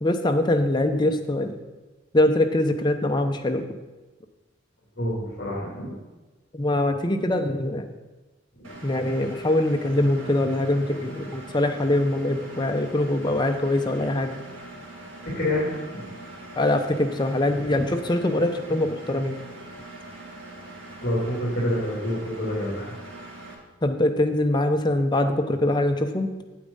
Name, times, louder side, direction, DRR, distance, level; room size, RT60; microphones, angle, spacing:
voice 1, 0.0-1.6 2.1-3.6 6.5-7.9 8.8-14.3 16.6-19.4 23.8-26.3, left 1 dB, 20° left, 5 dB, 0.7 m, -23 dB
voice 2, 5.0-6.0 8.6-8.8 15.2-16.1 17.5-17.8 21.0-22.9, left 1 dB, 45° left, -6 dB, 2.7 m, -28 dB
Engine, 8.6-23.5, right 2 dB, 85° right, 2.1 m, -42 dB
8.5 x 8.4 x 5.4 m, 1.2 s
head